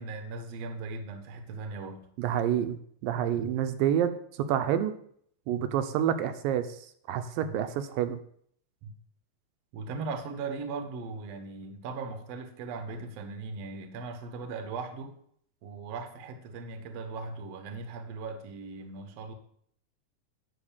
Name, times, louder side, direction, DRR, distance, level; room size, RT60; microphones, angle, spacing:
voice 1, 0.0-2.1 3.4-3.5 5.5-5.6 7.4-7.6 8.8-8.9 9.7-15.2 15.6-19.3, right 4 dB, 65° right, 6 dB, 1.8 m, -38 dB
voice 2, 2.2-4.9 5.5-6.8 7.1-8.2, right 10 dB, 85° right, 9 dB, 2.4 m, -28 dB
11.0 x 4.2 x 7.2 m, 0.64 s
omnidirectional pair, 4.0 m